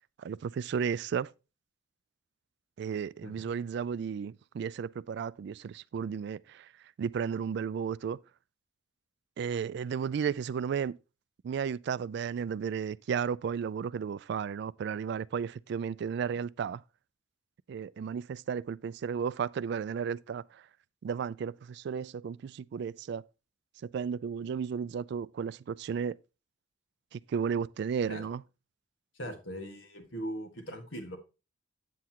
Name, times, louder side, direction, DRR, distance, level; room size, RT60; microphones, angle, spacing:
voice 1, 0.2-1.3 2.8-6.7 7.0-8.2 9.4-11.0 11.4-16.8 17.7-20.6 21.0-23.2 23.8-26.2 27.1-28.4, right 7 dB, 60° right, 0.3 m, -34 dB
voice 2, 29.2-31.2, equal, 80° left, 1.8 m, -40 dB
8.4 x 7.8 x 2.9 m
head